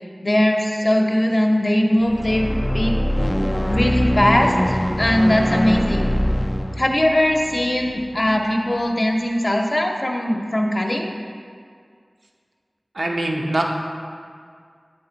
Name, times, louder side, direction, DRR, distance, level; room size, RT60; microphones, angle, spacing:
voice 1, 0.2-2.9 3.7-6.1 6.8-11.1, left 1 dB, 40° left, 2 dB, 0.6 m, -20 dB
sound 1, 2.0-8.4, equal, 10° left, 0.3 m, -23 dB
voice 2, 12.9-13.6, right 1 dB, 80° right, 0 dB, 0.7 m, -22 dB
8.2 x 3.9 x 3.9 m, 2.1 s
wide cardioid pair, 55°, 0 cm